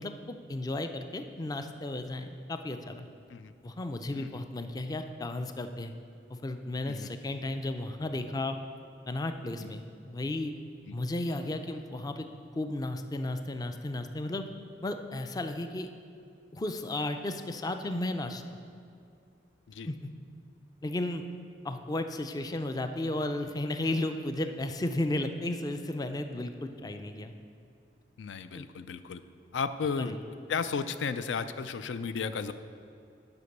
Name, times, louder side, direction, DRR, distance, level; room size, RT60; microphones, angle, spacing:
voice 1, 0.0-3.1 3.6-5.9 6.3-8.6 9.1-10.5 10.9-12.3 12.5-14.4 14.8-15.9 16.5-18.4 19.9-20.1 20.8-21.3 21.6-27.3 28.5-28.7 30.0-30.2, left 1 dB, 20° left, 7 dB, 0.4 m, -34 dB
voice 2, 28.2-29.2 29.5-30.2 30.5-32.5, left 5 dB, 85° left, 11 dB, 0.4 m, -34 dB
9.6 x 5.2 x 6.5 m, 2.4 s
head